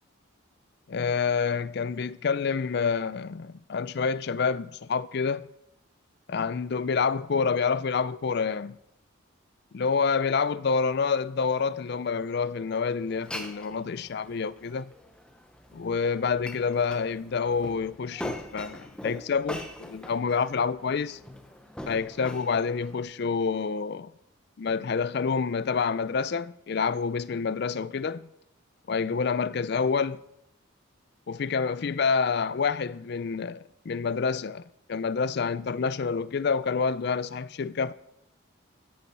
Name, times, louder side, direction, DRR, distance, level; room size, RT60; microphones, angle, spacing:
voice 1, 0.9-5.5 6.3-8.8 9.7-14.9 15.7-21.2 21.9-24.1 24.6-28.3 28.9-30.2 31.3-34.6 34.9-37.9, left 5 dB, 50° left, 0.4 m, -28 dB
Glass, 13.1-23.0, left 1 dB, 5° left, 0.8 m, -42 dB
13.0 x 6.9 x 5.5 m
head